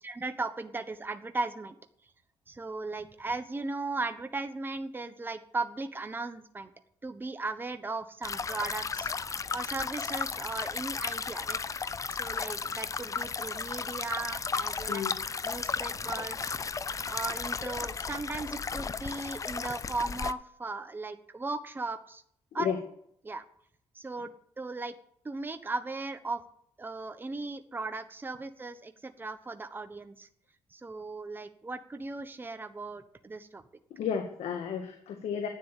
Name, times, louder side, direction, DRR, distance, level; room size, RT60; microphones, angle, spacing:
voice 1, 0.0-1.8 2.5-6.7 7.0-9.1 9.5-11.6 12.1-15.0 15.4-16.5 17.1-22.2 22.5-22.7 23.2-23.4 23.9-24.3 24.6-24.9 25.2-26.4 26.8-30.3 30.7-33.6, right 3 dB, 20° right, 9 dB, 1.1 m, -37 dB
sound 1, 8.2-20.3, left 5 dB, 30° left, 0.6 m, -34 dB
voice 2, 34.0-35.5, left 7 dB, 75° left, 6 dB, 1.7 m, -32 dB
11.5 x 9.5 x 8.4 m, 0.68 s
cardioid pair, 90°, 11 cm